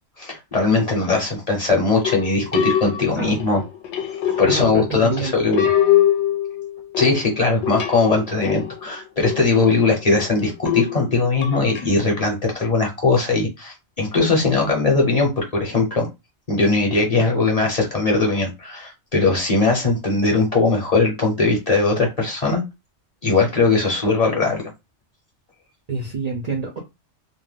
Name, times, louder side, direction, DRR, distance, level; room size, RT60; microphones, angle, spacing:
voice 1, 0.2-3.6 4.4-5.7 7.0-16.1 16.5-22.6 23.2-24.6, left 3 dB, 35° left, -1 dB, 0.9 m, -20 dB
sound 1, 2.0-11.8, left 10 dB, 75° left, 0.9 m, -24 dB
voice 2, 4.4-5.3 25.9-26.8, right 4 dB, 50° right, 0 dB, 0.5 m, -27 dB
2.5 x 2.1 x 3.2 m, 0.23 s
omnidirectional pair, 1.2 m